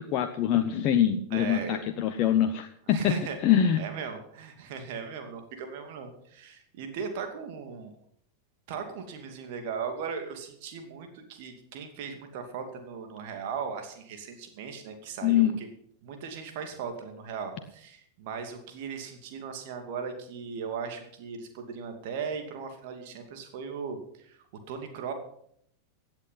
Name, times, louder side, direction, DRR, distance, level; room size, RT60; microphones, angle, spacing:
voice 1, 0.0-3.2 3.4-3.8 15.2-15.6, left 10 dB, 40° left, 7 dB, 0.9 m, -24 dB
voice 2, 1.3-1.8 2.9-3.4 3.8-7.9 8.7-15.7 16.0-24.4 24.7-25.1, right 6 dB, 50° right, 5 dB, 2.6 m, -38 dB
16.0 x 8.9 x 5.8 m, 0.67 s
figure-of-eight pair, 90°, 0 cm